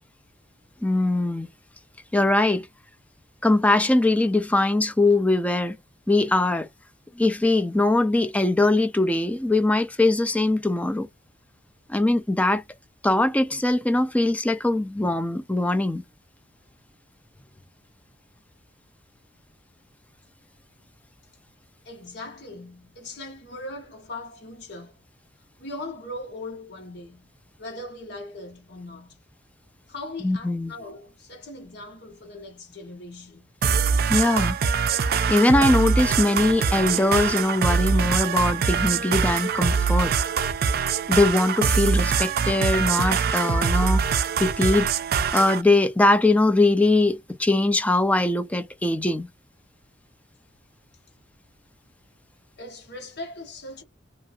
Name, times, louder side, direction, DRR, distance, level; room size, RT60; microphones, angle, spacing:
voice 1, 0.8-1.5 2.1-2.7 3.4-5.8 6.1-6.7 7.2-11.1 11.9-12.6 13.0-16.0 30.2-30.7 34.1-34.6 35.3-40.1 41.1-44.9 45.3-49.3, left 2 dB, 10° left, 0.4 m, -21 dB
voice 2, 21.8-25.0 25.6-27.3 27.6-29.2 29.9-33.5 52.6-53.8, left 2 dB, 60° left, 1.4 m, -39 dB
sound 1, 33.6-45.6, right 6 dB, 55° right, 0.4 m, -23 dB
2.8 x 2.6 x 2.3 m
head